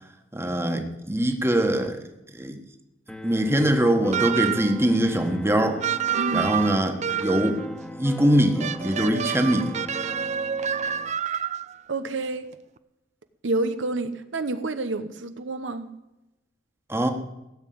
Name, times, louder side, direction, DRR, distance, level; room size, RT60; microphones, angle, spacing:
voice 1, 0.3-2.0 2.3-2.6 3.2-5.8 6.3-7.6 8.0-9.7 16.9-17.1, right 1 dB, 15° right, 1.4 m, -22 dB
sound 1, 3.1-11.1, equal, 5° left, 1.3 m, -39 dB
sound 2, 4.1-4.8 5.8-7.6 8.6-11.8, right 8 dB, 40° right, 0.5 m, -28 dB
voice 2, 6.2-6.5 11.2-11.5 11.9-12.5 13.4-15.9, right 2 dB, 80° right, 1.0 m, -29 dB
17.0 x 7.3 x 9.4 m
head